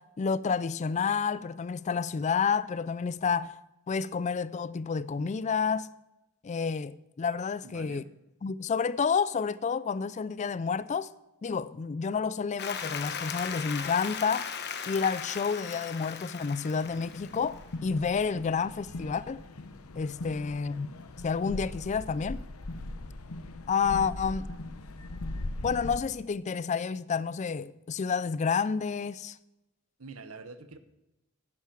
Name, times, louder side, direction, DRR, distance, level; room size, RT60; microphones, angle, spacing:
voice 1, 0.0-3.6 3.9-5.9 6.4-8.0 8.4-11.1 11.4-14.5 14.9-19.4 20.0-20.9 21.2-22.4 23.7-24.5 25.6-29.4, left 5 dB, 35° left, 0.3 m, -30 dB
voice 2, 7.6-8.1 20.3-20.5 30.0-30.8, right 4 dB, 75° right, 1.1 m, -46 dB
Applause, 12.6-17.6, left 7 dB, 50° left, 1.1 m, -37 dB
sound 1, 16.8-26.0, left 2 dB, 85° left, 0.9 m, -40 dB
10.5 x 10.5 x 5.9 m
head